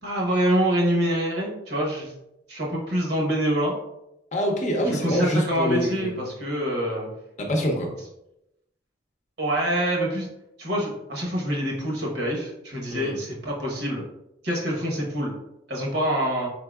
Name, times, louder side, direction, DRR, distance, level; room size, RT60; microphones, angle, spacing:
voice 1, 0.0-2.1 2.5-3.7 4.8-7.1 9.4-10.3 10.6-14.0 14.4-15.4 15.7-16.5, equal, 60° right, -2 dB, 1.1 m, -25 dB
voice 2, 4.3-6.2 7.4-7.9 12.9-13.1, equal, 40° left, 1 dB, 0.6 m, -25 dB
4.5 x 3.7 x 2.3 m, 0.86 s
head